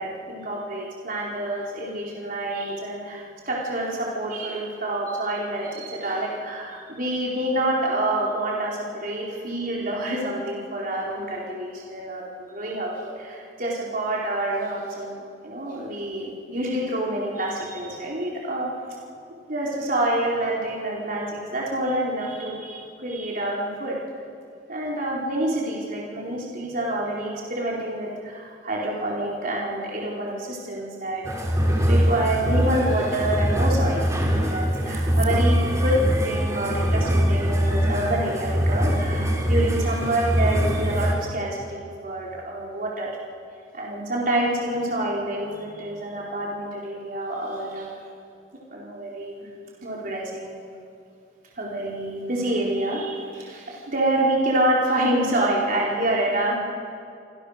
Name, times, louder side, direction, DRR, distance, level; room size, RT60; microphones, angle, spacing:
voice 1, 0.0-15.2 15.4-18.7 19.5-24.0 24.7-43.1 43.7-47.9 48.7-49.5 49.8-50.5 51.6-56.6, right 1 dB, 50° right, -4 dB, 4.3 m, -27 dB
sound 1, 31.2-41.1, equal, 15° right, 3.6 m, -22 dB
27.0 x 26.5 x 6.6 m, 2.5 s
head